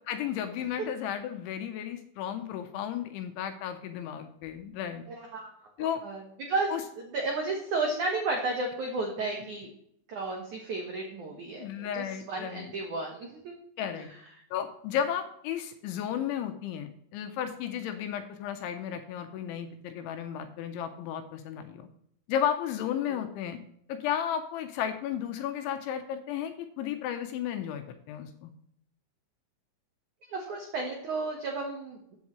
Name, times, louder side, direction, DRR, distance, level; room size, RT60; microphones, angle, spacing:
voice 1, 0.1-5.0 5.8-6.0 6.7-6.8 11.6-12.7 13.8-14.1 14.5-21.9 22.3-23.6 23.9-28.5, left 9 dB, 80° left, 8 dB, 3.0 m, -33 dB
voice 2, 5.1-5.5 6.0-6.2 6.5-6.7 7.1-9.7 10.1-13.5 14.0-14.1 23.1-23.2 30.3-32.2, right 3 dB, 75° right, 1 dB, 1.7 m, -33 dB
14.5 x 8.2 x 3.2 m, 0.69 s
omnidirectional pair, 5.8 m